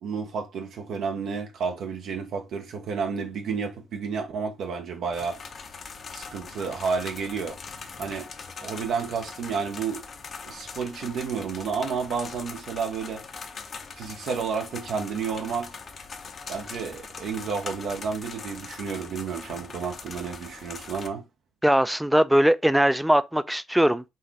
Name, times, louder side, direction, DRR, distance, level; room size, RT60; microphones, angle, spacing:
voice 1, 0.0-5.4 6.1-7.6 8.0-8.3 8.6-10.0 10.4-13.2 14.0-15.8 16.5-21.2, right 5 dB, 70° right, 0.7 m, -31 dB
sound 1, 5.1-21.1, left 5 dB, 45° left, 0.6 m, -41 dB
voice 2, 21.6-24.0, right 1 dB, 5° right, 0.3 m, -20 dB
4.0 x 2.5 x 3.9 m
cardioid pair, 90°, 0 cm